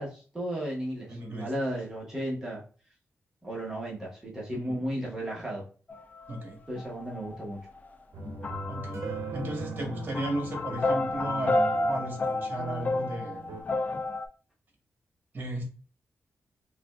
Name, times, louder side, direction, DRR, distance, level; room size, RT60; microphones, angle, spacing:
voice 1, 0.0-2.6 3.4-5.6 6.7-7.6, equal, 10° right, -5 dB, 1.0 m, -34 dB
voice 2, 1.1-1.5 4.7-4.8 6.3-6.6 8.7-9.0 9.3-13.6 15.3-15.6, right 1 dB, 40° right, 2 dB, 1.2 m, -35 dB
sound 1, 5.9-6.5 6.8-7.8 8.2-14.3, left 2 dB, 35° left, 0.4 m, -31 dB
sound 2, 8.1-13.6, right 3 dB, 70° right, 0.6 m, -40 dB
4.9 x 2.3 x 2.3 m, 0.39 s
wide cardioid pair, 155°, 5 cm